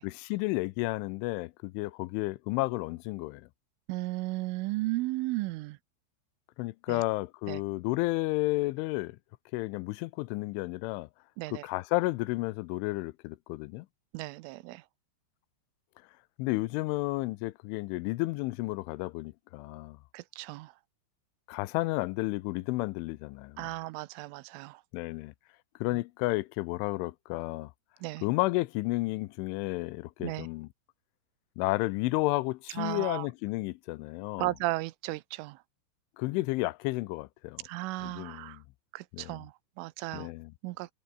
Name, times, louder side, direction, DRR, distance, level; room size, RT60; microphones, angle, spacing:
voice 1, 0.0-3.5 6.6-9.2 9.5-11.1 11.5-13.9 16.4-20.0 21.5-23.7 24.9-25.3 25.8-27.7 28.2-30.7 31.6-34.5 36.2-37.7 38.0-38.6 39.1-39.4 40.1-40.5, left 21 dB, 85° left, 3.1 m, -32 dB
voice 2, 3.9-5.8 6.9-7.0 7.5-7.6 11.4-11.6 14.1-14.8 20.1-20.7 23.6-24.8 28.0-28.2 30.2-30.5 32.8-33.3 34.4-35.6 37.6-38.6 38.9-39.5 39.8-40.3 40.6-40.9, right 20 dB, 90° right, 3.3 m, -35 dB
omnidirectional pair, 5.6 m